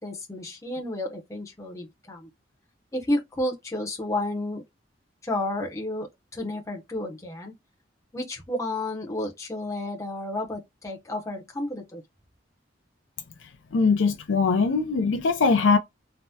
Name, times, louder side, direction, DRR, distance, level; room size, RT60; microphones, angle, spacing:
voice 1, 0.0-2.3 2.9-4.6 5.2-7.5 8.1-12.0, left 1 dB, 15° left, 0.6 m, -31 dB
voice 2, 13.7-15.8, left 4 dB, 75° left, 0.5 m, -21 dB
3.4 x 2.0 x 2.6 m
head